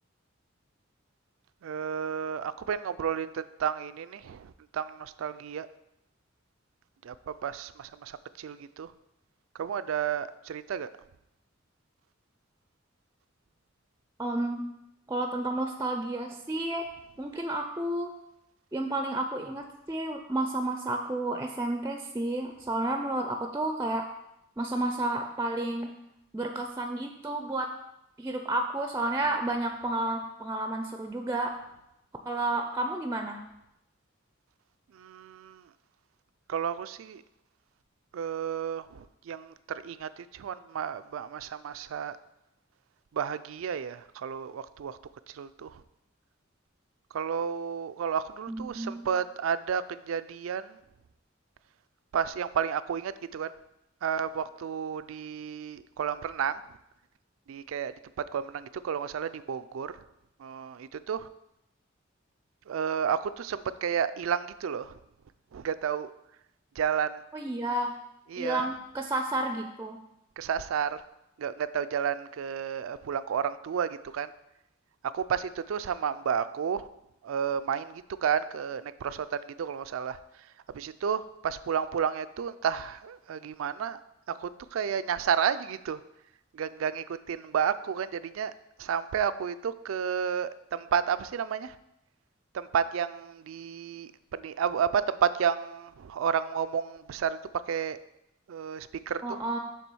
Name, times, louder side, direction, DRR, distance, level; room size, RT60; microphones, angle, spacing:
voice 1, 1.6-4.5 4.7-5.7 7.1-7.2 7.4-7.9 8.4-8.9 9.6-10.9 35.0-35.5 36.5-37.2 38.1-38.8 39.3-39.5 39.8-40.1 40.4-42.2 43.2-44.9 45.4-45.7 47.1-49.8 50.1-50.7 52.1-53.5 54.0-56.6 57.5-57.9 58.3-59.9 60.4-61.3 62.7-64.9 65.5-66.1 66.8-67.1 68.3-68.7 70.4-71.0 71.4-74.3 75.1-76.8 77.2-77.9 78.2-80.2 80.7-84.0 84.4-86.0 86.6-88.5 88.8-91.7 92.5-94.1 94.4-97.4 97.7-98.0 98.5-99.4, right 7 dB, 80° right, 13 dB, 0.4 m, -31 dB
voice 2, 14.2-14.6 15.1-16.8 17.2-18.1 18.7-24.0 24.6-25.9 26.3-27.7 28.2-31.5 32.3-33.4 48.5-49.1 67.3-67.9 68.4-70.0 99.2-99.6, right 2 dB, 15° right, 5 dB, 0.4 m, -31 dB
7.0 x 3.5 x 6.1 m, 0.84 s
head